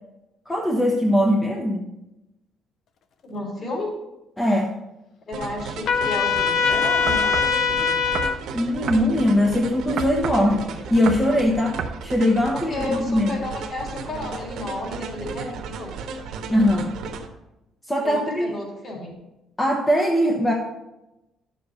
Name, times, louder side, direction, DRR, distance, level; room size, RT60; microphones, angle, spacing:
voice 1, 0.5-1.8 4.4-4.7 8.5-13.4 16.5-17.0 17.9-18.6 19.6-20.5, left 1 dB, 10° left, -1 dB, 1.0 m, -21 dB
voice 2, 3.2-3.9 5.3-7.3 12.7-15.9 18.0-19.1, left 2 dB, 35° left, -2 dB, 3.5 m, -32 dB
sound 1, 5.3-17.3, right 4 dB, 75° right, 1.4 m, -35 dB
Trumpet, 5.9-8.4, left 6 dB, 50° left, 0.6 m, -21 dB
sound 2, 7.1-7.6 8.2-8.4 8.9-9.1 10.0-10.5 11.1-11.3 11.8-12.0, right 6 dB, 50° right, 0.8 m, -30 dB
11.5 x 7.2 x 4.3 m, 0.94 s
cardioid pair, 170°, 0 cm